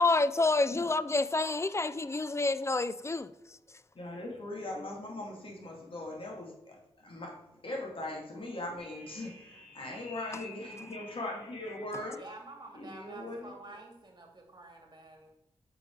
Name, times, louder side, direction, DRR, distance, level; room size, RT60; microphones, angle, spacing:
voice 1, 0.0-3.3, left 3 dB, 25° left, 0.4 m, -28 dB
voice 2, 3.9-12.2 12.7-13.5, left 1 dB, 50° left, 2.4 m, -40 dB
sound 1, 8.8-12.3, left 2 dB, 75° left, 2.4 m, -51 dB
voice 3, 12.2-15.3, right 2 dB, 40° right, 2.1 m, -49 dB
6.3 x 4.7 x 4.6 m
supercardioid pair, 40°, 12 cm